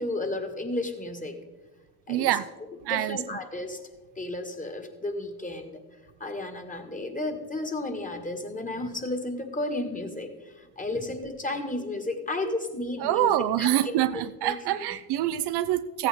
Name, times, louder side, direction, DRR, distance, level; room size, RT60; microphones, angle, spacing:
voice 1, 0.0-1.4 2.1-2.4 2.9-3.8 4.2-5.8 6.2-13.3 13.6-14.5, left 2 dB, 20° left, 6 dB, 1.9 m, -33 dB
voice 2, 2.1-2.5 2.9-3.2 13.0-16.1, right 13 dB, 65° right, 12 dB, 0.6 m, -25 dB
15.0 x 8.5 x 3.6 m, 1.2 s
hypercardioid pair, 55°, 42 cm